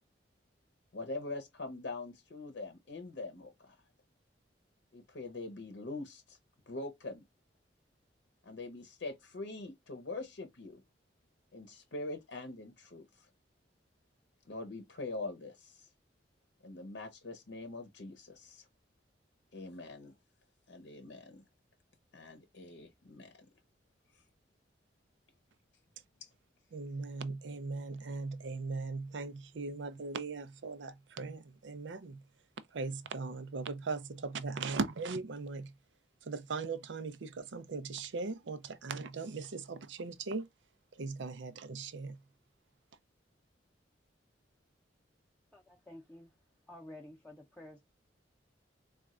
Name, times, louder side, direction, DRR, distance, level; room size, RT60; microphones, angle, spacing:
voice 1, 0.9-3.7 4.9-6.4 6.7-7.2 8.4-10.8 11.5-13.3 14.5-15.8 16.6-18.7 19.5-20.1 20.7-21.4 22.1-23.3 26.2-26.3, left 2 dB, 75° left, 0.7 m, -43 dB
voice 2, 26.7-32.2 32.7-35.7 36.2-40.5 41.0-42.2, right 4 dB, 90° right, 0.5 m, -39 dB
voice 3, 45.5-46.3 46.7-47.8, left 1 dB, 5° left, 0.6 m, -51 dB
4.1 x 2.3 x 2.3 m
head